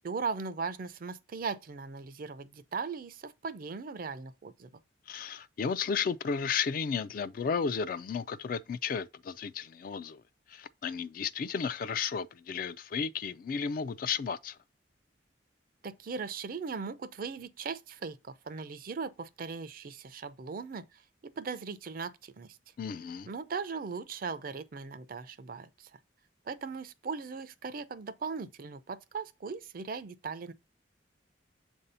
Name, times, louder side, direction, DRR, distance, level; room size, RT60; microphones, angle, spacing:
voice 1, 0.0-4.7 15.8-20.8 21.4-22.6 23.3-25.9 26.5-30.5, right 5 dB, 50° right, 0.4 m, -38 dB
voice 2, 5.1-10.2 10.5-14.6 22.8-23.3, left 6 dB, 50° left, 0.3 m, -33 dB
7.2 x 2.7 x 5.4 m
head